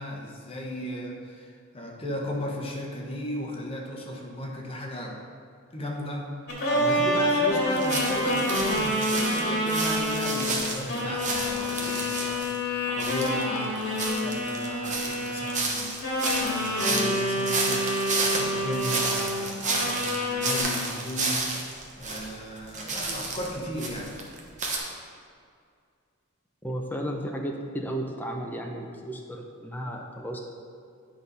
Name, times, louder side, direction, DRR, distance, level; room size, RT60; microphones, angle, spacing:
voice 1, 0.0-5.2 5.7-12.5 12.8-24.1, equal, 25° left, -1 dB, 1.1 m, -36 dB
sound 1, 6.5-10.4 10.9-15.7 16.0-19.4 19.7-20.6, left 1 dB, 50° left, 2.0 m, -27 dB
sound 2, 7.8-12.6 13.0-22.3 22.6-24.8, right 3 dB, 35° right, 1.1 m, -31 dB
voice 2, 26.6-30.4, equal, 10° left, 1 dB, 0.6 m, -34 dB
10.0 x 4.2 x 5.2 m, 2.2 s
head